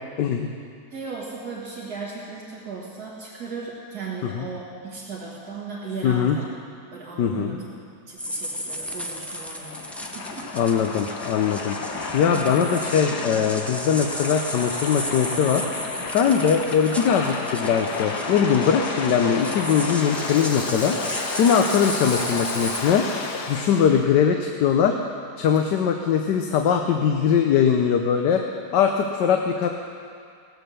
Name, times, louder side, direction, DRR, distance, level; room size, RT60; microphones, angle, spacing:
voice 1, 0.2-0.5 4.3-4.5 6.0-6.4 7.2-7.6 10.5-11.8 12.1-15.7 16.1-21.0 21.4-23.0 23.5-25.0 25.4-28.4 28.7-29.7, left 7 dB, 85° left, 4 dB, 1.4 m, -21 dB
voice 2, 0.9-6.5 6.9-7.7 8.1-10.5 12.3-12.6 23.8-24.0 25.5-25.6, right 4 dB, 65° right, -4 dB, 2.2 m, -36 dB
sound 1, 8.2-22.8, equal, ahead, 0.3 m, -34 dB
Waves surf, 8.3-24.0, left 4 dB, 70° left, 1.7 m, -32 dB
18.0 x 8.9 x 6.8 m, 2.3 s
omnidirectional pair, 1.8 m